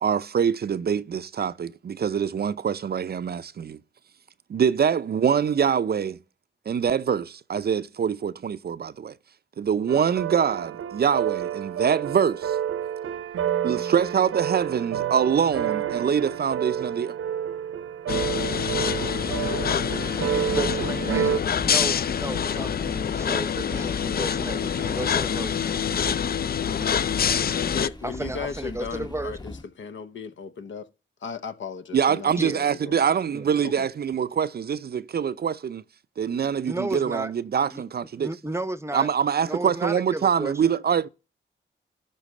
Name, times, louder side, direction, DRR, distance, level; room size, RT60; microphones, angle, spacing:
voice 1, 0.0-3.8 4.5-6.2 6.7-9.1 9.6-12.6 13.6-17.1 31.9-35.8 36.2-38.3 38.9-41.1, right 7 dB, 50° right, 0.5 m, -24 dB
sound 1, 9.9-21.4, right 9 dB, 80° right, 0.8 m, -29 dB
sound 2, 18.1-27.9, left 8 dB, 50° left, 0.4 m, -26 dB
sound 3, 18.7-29.6, left 2 dB, 20° left, 0.9 m, -41 dB
voice 2, 20.6-25.7 28.0-29.4 32.4-32.6 33.3-33.4 36.7-37.3 37.7-37.8 38.2-39.1 39.4-40.7, right 2 dB, 15° right, 0.7 m, -33 dB
voice 3, 27.3-30.9 31.2-33.0 33.6-33.9, left 6 dB, 65° left, 0.9 m, -36 dB
12.0 x 4.0 x 6.5 m
cardioid pair, 50°, 21 cm